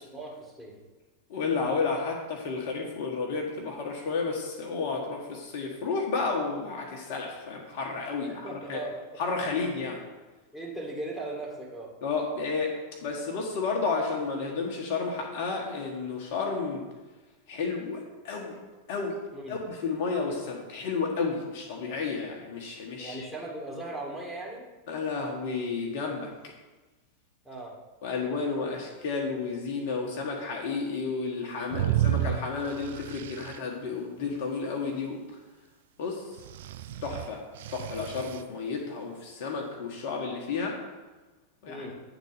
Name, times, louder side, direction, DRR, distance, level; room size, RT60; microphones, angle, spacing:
voice 1, 0.1-0.8 8.3-9.2 10.5-11.9 19.3-19.6 23.0-24.6 27.5-27.8 31.7-32.1 41.7-42.0, right 2 dB, ahead, -2 dB, 2.0 m, -38 dB
voice 2, 1.3-8.8 9.2-10.0 12.0-16.8 17.5-18.6 18.9-19.2 19.5-23.3 24.9-26.3 28.0-35.2 36.0-36.3 37.0-37.4 37.7-40.8 41.6-41.9, left 4 dB, 50° left, 0 dB, 1.3 m, -32 dB
sound 1, 31.7-33.6 36.4-38.4, right 12 dB, 55° right, 0.4 m, -31 dB
8.8 x 4.0 x 6.7 m, 1.2 s
figure-of-eight pair, 90°, 0 cm